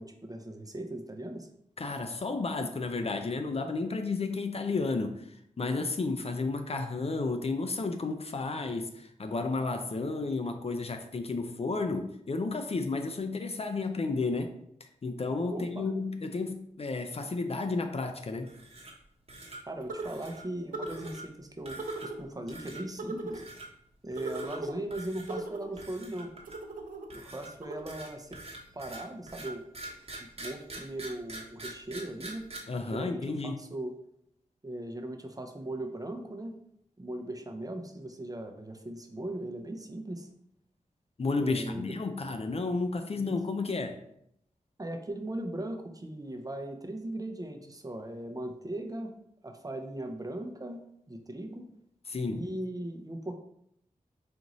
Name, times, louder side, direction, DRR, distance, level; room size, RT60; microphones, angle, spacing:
voice 1, 0.0-1.5 15.5-15.9 19.7-23.4 24.0-26.3 27.1-28.3 28.7-29.6 30.2-32.5 32.9-34.0 34.6-36.6 37.0-40.3 41.4-41.9 43.2-43.3 44.8-49.1 49.4-51.7 52.3-53.3, right 1 dB, 25° right, 4 dB, 0.6 m, -39 dB
voice 2, 1.8-14.5 15.0-18.5 32.7-33.6 41.2-44.0 52.1-52.5, left 3 dB, 45° left, 6 dB, 0.5 m, -32 dB
sound 1, 18.4-19.0 19.3-19.6 20.0-20.5 20.9-21.2 21.7-22.2 22.5-22.8 23.3-23.7 24.1-24.6 24.9-25.4 25.8-26.7 27.1-32.6, right 2 dB, 45° right, 1.0 m, -45 dB
sound 2, 19.9-20.3 20.7-21.1 21.8-22.2 23.0-23.4 24.2-24.8 25.3-25.8 26.4-27.1 27.6-27.8, right 2 dB, 85° right, 0.5 m, -38 dB
5.0 x 2.6 x 3.0 m, 0.72 s
cardioid pair, 45°, 14 cm